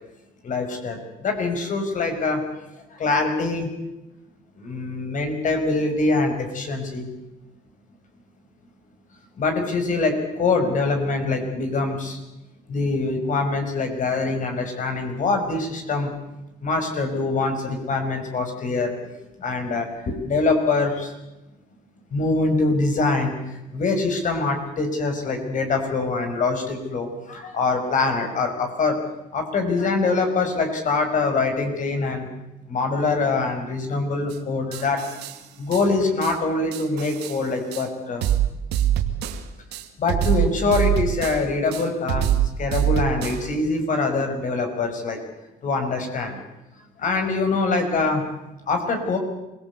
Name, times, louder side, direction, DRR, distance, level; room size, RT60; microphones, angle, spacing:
voice 1, 0.4-2.6 2.9-3.7 4.6-7.1 9.4-12.2 12.7-16.1 16.6-19.1 19.4-21.1 22.1-29.0 29.3-32.3 32.7-35.0 35.5-38.3 40.0-42.3 42.6-45.2 45.6-46.4 47.0-48.2 48.7-49.2, left 3 dB, 50° left, 5 dB, 5.6 m, -24 dB
sound 1, 34.3-34.4 34.7-35.4 35.7-35.8 36.2-36.3 36.7-37.4 37.7-37.8 38.2-39.4 39.7-41.4 41.7-43.4, right 11 dB, 90° right, 2.2 m, -24 dB
26.0 x 18.0 x 8.3 m, 0.97 s
cardioid pair, 110°, 17 cm